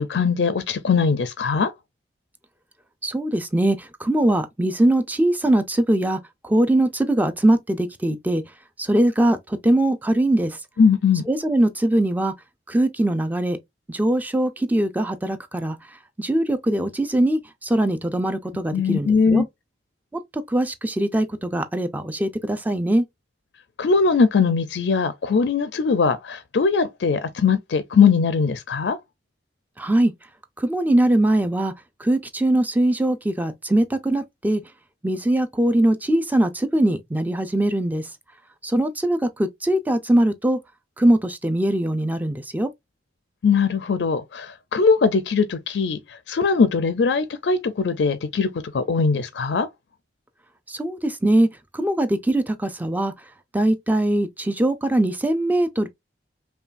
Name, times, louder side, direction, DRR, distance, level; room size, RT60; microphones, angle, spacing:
voice 1, 0.0-1.7 10.8-11.2 18.7-19.5 23.8-29.0 43.4-49.7, left 5 dB, 85° left, 0.4 m, -20 dB
voice 2, 3.0-8.4 8.8-10.6 11.3-12.3 12.7-13.6 13.9-15.8 16.2-19.4 20.3-23.0 29.8-30.1 30.6-31.7 32.0-34.6 35.0-38.0 38.6-40.6 41.0-42.7 50.7-51.5 51.7-53.1 53.5-55.9, right 1 dB, 10° right, 0.4 m, -21 dB
5.4 x 2.3 x 2.4 m
head